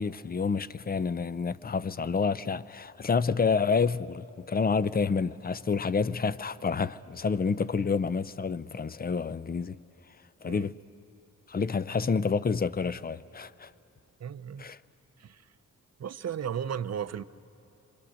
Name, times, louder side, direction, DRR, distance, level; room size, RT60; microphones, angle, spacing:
voice 1, 0.0-9.8 10.4-10.7 11.5-13.7 14.6-14.8, left 5 dB, 30° left, 0.5 m, -28 dB
voice 2, 14.2-14.7 15.2-15.5 16.0-17.2, right 8 dB, 50° right, 0.6 m, -35 dB
27.5 x 24.5 x 6.4 m
cardioid pair, 85°, 33 cm